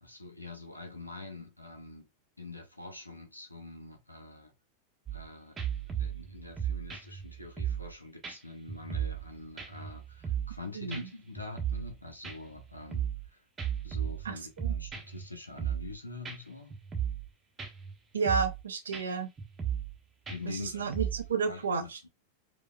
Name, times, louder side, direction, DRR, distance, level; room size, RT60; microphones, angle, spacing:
voice 1, 0.0-2.1 2.4-4.5 5.1-13.4 13.8-16.8 20.3-20.9 21.5-22.1, left 3 dB, 85° left, 0.9 m, -45 dB
sound 1, 5.1-5.3 5.6-7.9 8.2-8.4 8.7-9.3 9.6-10.6 10.9-11.0 11.4-11.9 12.2-13.3 13.6-15.2 15.6-15.9 16.2-16.4 16.7-17.3 17.6-17.9 18.2-18.6 18.9-19.0 19.4-20.0 20.3-21.3, right 9 dB, 20° right, 0.8 m, -35 dB
voice 2, 14.2-14.7 18.1-19.3 20.5-22.1, right 5 dB, 70° right, 0.5 m, -32 dB
4.9 x 2.3 x 2.2 m
figure-of-eight pair, 90°, 0 cm